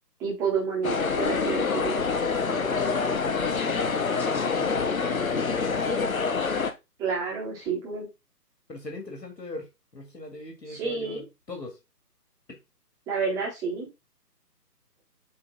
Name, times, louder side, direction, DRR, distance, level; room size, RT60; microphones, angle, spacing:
voice 1, 0.2-2.0 7.0-8.1 10.7-11.2 13.1-13.9, right 5 dB, 5° right, 1.4 m, -29 dB
sound 1, 0.8-6.7, left 5 dB, 55° left, 1.1 m, -26 dB
voice 2, 2.3-6.1 8.7-11.8 12.5-12.6, left 3 dB, 85° left, 2.2 m, -39 dB
7.7 x 3.4 x 3.8 m
figure-of-eight pair, 145°, 48 cm